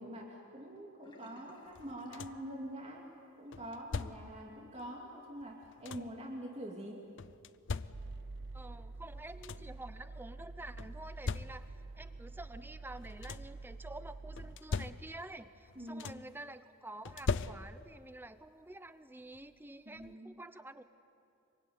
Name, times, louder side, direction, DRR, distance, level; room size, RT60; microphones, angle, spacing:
voice 1, 0.0-3.1 3.4-7.0 15.7-16.2 19.9-20.3, equal, 30° right, -1 dB, 2.7 m, -45 dB
Sink (filling or washing), 1.0-3.0 3.3-3.6 4.0-4.1, left 2 dB, 20° left, 2.1 m, -62 dB
sound 1, 1.8-2.6 3.5-4.5 5.4-6.3 7.2-8.4 9.0-9.1 9.2-9.9 10.8-11.9 12.9-13.6 14.4-15.4 15.7-16.4 17.1-18.0 19.3-19.4 20.0-20.1, left 4 dB, 60° left, 0.6 m, -41 dB
sound 2, 7.9-14.6, right 3 dB, 50° right, 0.5 m, -47 dB
voice 2, 8.5-20.8, right 2 dB, 10° right, 12 dB, 0.8 m, -49 dB
25.5 x 24.0 x 9.6 m, 2.6 s
head